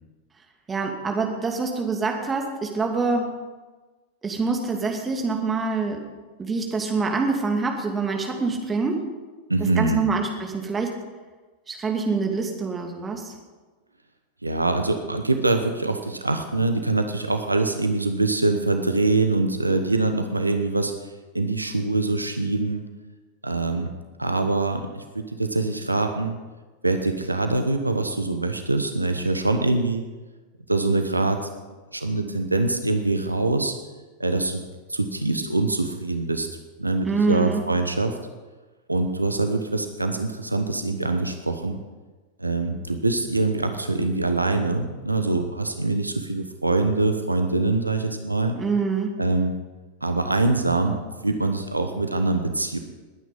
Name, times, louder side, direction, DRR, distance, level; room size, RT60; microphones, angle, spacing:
voice 1, 0.7-3.3 4.2-6.0 6.4-9.1 9.8-11.0 11.7-13.3 37.1-37.7 48.6-49.2, right 4 dB, 15° right, 2 dB, 2.6 m, -25 dB
voice 2, 9.5-10.0 14.4-21.1 21.3-22.8 23.4-23.9 24.2-26.4 26.8-30.0 30.7-31.5 31.9-33.7 34.2-34.6 34.9-36.5 36.8-38.2 38.9-41.8 42.4-48.6 49.2-49.5 50.0-52.8, right 2 dB, 85° right, 7 dB, 1.1 m, -24 dB
20.5 x 9.4 x 5.4 m, 1.3 s
figure-of-eight pair, 90°, 0 cm